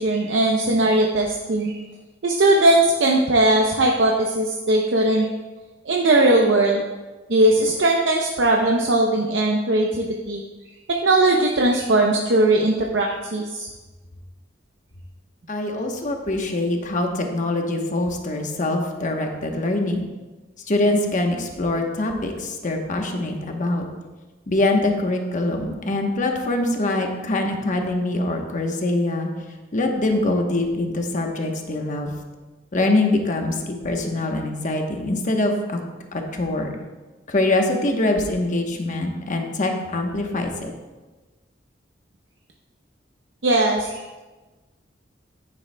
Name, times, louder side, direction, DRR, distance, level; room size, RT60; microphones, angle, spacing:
voice 1, 0.0-1.8 2.2-5.3 5.9-6.8 7.3-10.4 11.0-13.7 43.4-44.2, right 2 dB, 70° right, 0 dB, 0.7 m, -19 dB
voice 2, 15.5-20.0 20.7-23.8 24.5-29.3 29.7-32.1 32.7-35.8 36.1-36.7 37.3-40.7, left 2 dB, 45° left, 3 dB, 1.0 m, -23 dB
9.9 x 9.6 x 2.2 m, 1.2 s
head